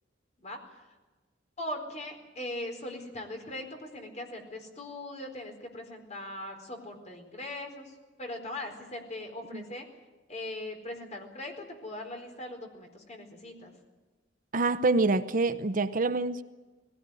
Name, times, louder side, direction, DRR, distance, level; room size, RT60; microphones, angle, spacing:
voice 1, 1.6-9.8 10.3-13.7, left 1 dB, 40° left, 4.3 m, -40 dB
voice 2, 14.5-16.4, right 3 dB, 45° right, 0.7 m, -26 dB
20.5 x 17.0 x 9.8 m
head